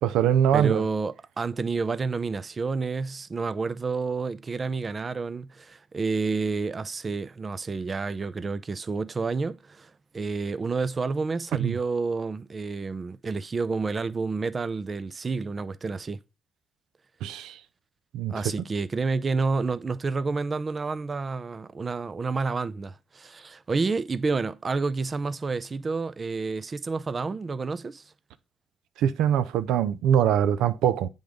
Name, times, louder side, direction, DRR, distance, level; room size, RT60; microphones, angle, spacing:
voice 1, 0.0-0.8 11.6-11.7 17.2-17.6 18.1-18.3 29.0-31.1, right 9 dB, 90° right, 0.5 m, -23 dB
voice 2, 0.5-16.2 18.3-28.0, right 4 dB, 35° right, 0.5 m, -29 dB
7.8 x 3.6 x 5.1 m
cardioid pair, 90°, 0 cm